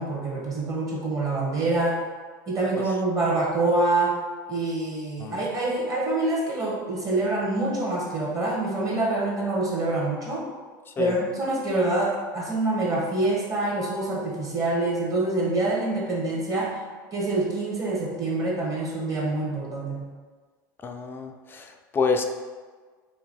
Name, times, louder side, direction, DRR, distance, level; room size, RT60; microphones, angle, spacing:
voice 1, 0.0-2.0 2.5-4.2 4.5-10.5 11.0-16.8 17.1-20.1, right 2 dB, 30° right, -3 dB, 1.3 m, -26 dB
voice 2, 20.8-22.2, left 4 dB, 20° left, 4 dB, 0.4 m, -28 dB
3.1 x 2.8 x 4.1 m, 1.5 s
hypercardioid pair, 95°, 11 cm